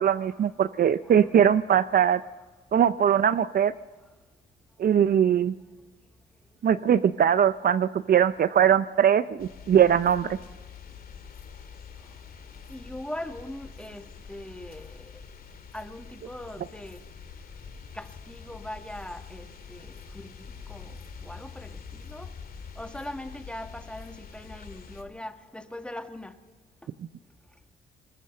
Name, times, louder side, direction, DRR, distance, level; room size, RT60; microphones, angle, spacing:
voice 1, 0.0-2.2 2.7-3.7 4.8-5.5 6.6-10.4, right 9 dB, 50° right, 14 dB, 0.6 m, -21 dB
sound 1, 9.4-25.0, left 6 dB, 50° left, 2.3 m, -45 dB
voice 2, 12.7-15.1 15.7-17.0 17.9-20.9 21.2-22.3 22.8-26.3, left 1 dB, 5° left, 7 dB, 1.4 m, -41 dB
20.5 x 20.0 x 6.6 m, 1.2 s
cardioid pair, 90°, 20 cm